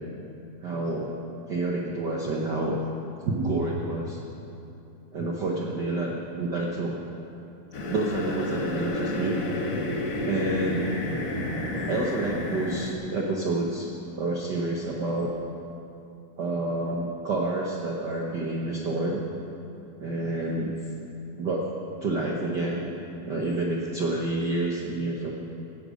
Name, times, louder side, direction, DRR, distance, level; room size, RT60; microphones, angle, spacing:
voice 1, 0.6-1.1 1.5-2.8 3.2-4.2 5.1-6.1 6.4-6.9 7.9-9.4 10.3-10.9 11.9-15.3 16.4-19.2 20.0-20.8 21.4-21.7 22.0-22.9 23.2-25.3, right 2 dB, 60° right, -2 dB, 1.1 m, -28 dB
sound 1, 7.7-12.9, left 1 dB, 55° left, 0.9 m, -30 dB
17.0 x 11.5 x 5.3 m, 2.8 s
omnidirectional pair, 3.3 m